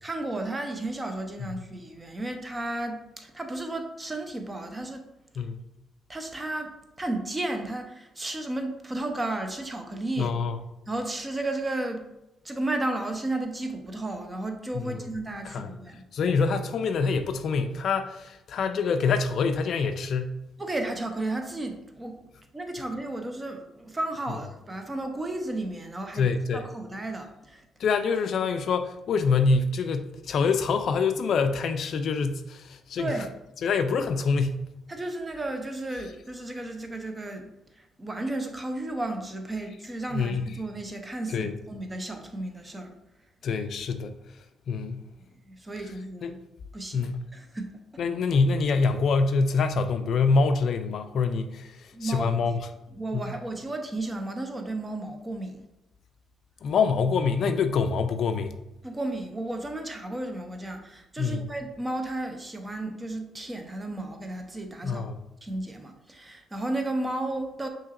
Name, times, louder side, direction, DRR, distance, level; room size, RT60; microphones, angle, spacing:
voice 1, 0.0-5.0 6.1-10.3 10.9-12.0 12.4-16.0 20.6-22.2 22.5-27.6 33.0-33.4 34.9-42.9 45.5-46.4 46.7-47.7 51.9-52.4 52.9-55.6 58.8-65.1 65.4-67.7, right 2 dB, 20° right, 0.6 m, -33 dB
voice 2, 10.2-10.6 14.7-15.0 15.5-15.7 16.1-20.4 26.1-26.6 27.8-33.2 33.6-34.6 40.1-40.4 41.3-41.6 43.4-44.1 44.7-45.0 46.2-46.4 46.9-47.2 48.0-52.6 53.1-53.3 56.6-58.5 61.2-61.5 64.8-65.2, left 4 dB, 65° left, 0.3 m, -25 dB
5.5 x 2.9 x 2.5 m
cardioid pair, 90°, 0 cm